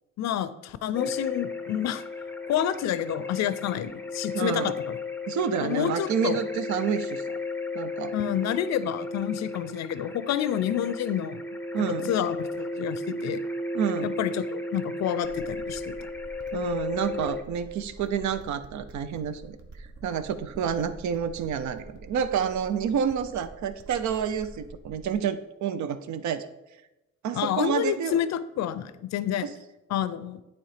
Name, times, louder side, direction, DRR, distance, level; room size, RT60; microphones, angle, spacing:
voice 1, 0.2-2.0 2.5-5.0 5.6-6.4 8.1-11.4 11.8-13.4 14.0-15.9 27.3-29.5 29.9-30.4, left 10 dB, 60° left, 15 dB, 0.5 m, -29 dB
sound 1, 0.9-17.4, left 2 dB, 5° left, 0.6 m, -34 dB
voice 2, 4.3-4.7 5.3-7.4 7.7-8.1 11.7-12.2 13.7-14.1 16.5-19.6 20.0-26.5 27.2-28.2 29.4-29.5, right 7 dB, 70° right, 12 dB, 0.6 m, -29 dB
sound 2, 15.2-25.2, right 2 dB, 50° right, 1.0 m, -47 dB
8.6 x 3.1 x 4.9 m, 0.98 s
cardioid pair, 90°, 30 cm